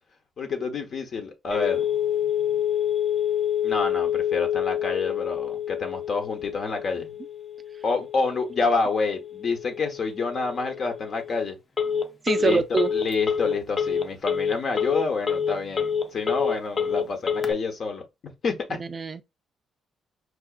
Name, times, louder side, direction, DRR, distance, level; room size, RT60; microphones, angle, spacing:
voice 1, 0.4-1.8 3.6-7.1 7.8-11.5 12.4-12.6 12.9-18.8, left 4 dB, 55° left, 1.0 m, -28 dB
Telephone, 1.5-17.5, left 8 dB, 35° left, 0.5 m, -27 dB
voice 2, 12.2-12.9 18.8-19.2, right 4 dB, 35° right, 0.4 m, -24 dB
4.8 x 2.4 x 2.4 m
cardioid pair, 90°, 0 cm